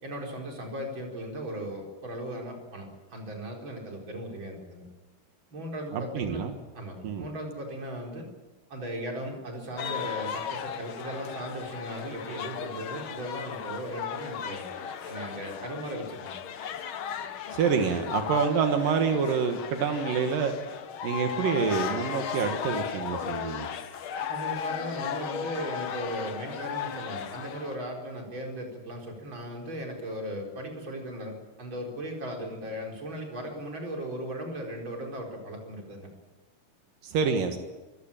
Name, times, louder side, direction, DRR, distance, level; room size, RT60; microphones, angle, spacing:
voice 1, 0.0-4.9 5.5-6.4 6.7-8.3 8.7-14.7 15.0-16.3 24.3-36.1, equal, 35° right, 1 dB, 5.0 m, -37 dB
voice 2, 5.9-6.5 7.0-7.3 17.5-20.5 21.0-23.7 37.0-37.6, right 6 dB, 80° right, 5 dB, 3.1 m, -27 dB
sound 1, 9.8-27.8, left 8 dB, 70° left, 1.2 m, -36 dB
24.5 x 16.0 x 8.8 m, 1.2 s
omnidirectional pair, 3.9 m